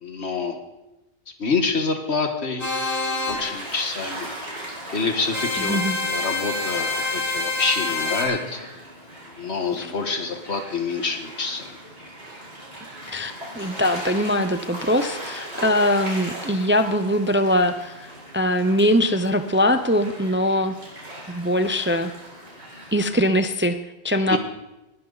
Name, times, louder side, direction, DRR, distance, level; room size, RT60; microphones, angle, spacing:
voice 1, 0.0-0.6 1.4-2.7 3.0-4.3 4.9-8.7 9.4-11.7 24.3-24.4, left 4 dB, 80° left, 6 dB, 1.8 m, -27 dB
sound 1, 2.6-3.4 5.3-8.2, left 3 dB, 60° left, 3.6 m, -26 dB
Gull seagull / Waves surf, 3.3-23.1, right 1 dB, 80° right, 5.2 m, -38 dB
voice 2, 5.6-6.0 9.8-9.9 13.1-20.8 21.3-22.1 22.9-23.8 24.0-24.4, equal, 15° right, 9 dB, 0.4 m, -22 dB
20.0 x 11.5 x 4.0 m, 0.99 s
omnidirectional pair, 1.1 m